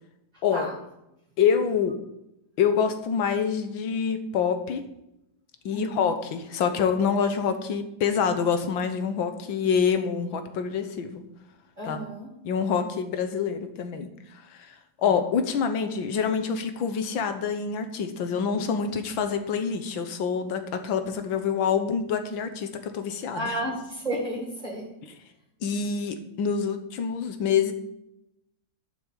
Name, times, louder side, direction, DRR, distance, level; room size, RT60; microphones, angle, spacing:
voice 1, 1.4-2.0 2.6-4.8 5.7-11.2 11.9-12.0 12.4-14.1 14.5-14.8 15.0-23.6 25.6-27.7, left 6 dB, 90° left, 8 dB, 1.8 m, -26 dB
voice 2, 5.7-6.1 11.8-12.3 15.0-15.2 23.3-24.9, right 1 dB, 20° right, -2 dB, 2.3 m, -32 dB
11.0 x 6.0 x 6.8 m, 0.85 s
omnidirectional pair, 2.1 m